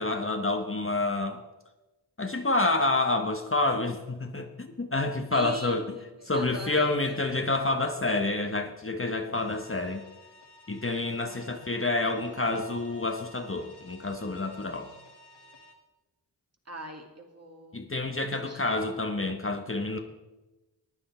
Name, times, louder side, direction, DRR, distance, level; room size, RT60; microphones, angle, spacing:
voice 1, 0.0-1.4 2.2-5.8 6.2-10.0 10.7-14.9 17.7-20.0, left 2 dB, 30° left, 5 dB, 1.1 m, -28 dB
voice 2, 5.3-7.4 11.2-11.8 16.7-17.8 18.1-18.7, right 1 dB, 35° right, 2 dB, 2.3 m, -43 dB
sound 1, 9.3-15.7, left 1 dB, 60° left, 1.9 m, -54 dB
15.0 x 9.7 x 4.5 m, 1.1 s
cardioid pair, 50°, 45 cm